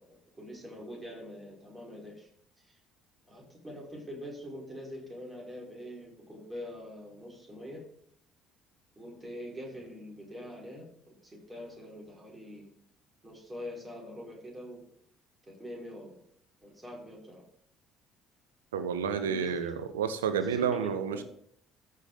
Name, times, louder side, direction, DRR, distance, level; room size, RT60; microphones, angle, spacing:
voice 1, 0.0-2.3 2.6-2.8 3.3-7.8 9.0-12.6 13.2-14.8 15.5-16.2 16.6-17.4 19.1-19.6 20.4-21.2, equal, 20° right, -2 dB, 4.7 m, -44 dB
voice 2, 18.7-21.2, right 7 dB, 80° right, 11 dB, 0.7 m, -30 dB
14.0 x 5.3 x 4.0 m, 0.67 s
figure-of-eight pair, 55°, 0 cm